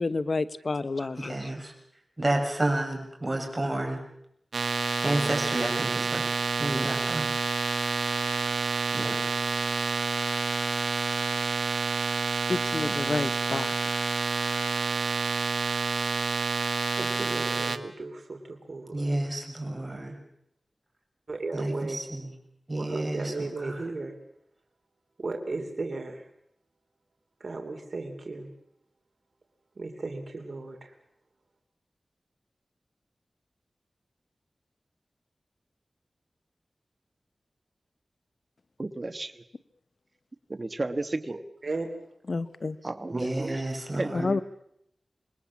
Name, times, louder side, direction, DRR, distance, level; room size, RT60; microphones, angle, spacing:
voice 1, 0.0-1.5 12.5-13.7 42.2-42.8 44.1-44.4, left 3 dB, 65° left, 13 dB, 1.0 m, -29 dB
voice 2, 1.2-1.7 2.2-4.0 5.0-6.2 6.6-7.3 8.9-9.3 18.9-20.2 21.5-22.3 22.7-23.9 43.1-44.3, right 1 dB, 25° right, 2 dB, 6.9 m, -30 dB
sound 1, 4.5-17.8, right 4 dB, 85° right, 1.3 m, -28 dB
voice 3, 17.0-18.4 18.7-19.1 21.3-22.0 22.8-24.1 25.2-26.2 27.4-28.5 29.8-30.9 41.6-41.9, right 3 dB, 65° right, 3 dB, 3.0 m, -35 dB
voice 4, 38.8-39.3 40.5-41.4 42.8-43.6 43.9-44.4, right 2 dB, 45° right, 11 dB, 1.4 m, -33 dB
26.5 x 21.0 x 7.3 m, 0.74 s
wide cardioid pair, 60°, 0 cm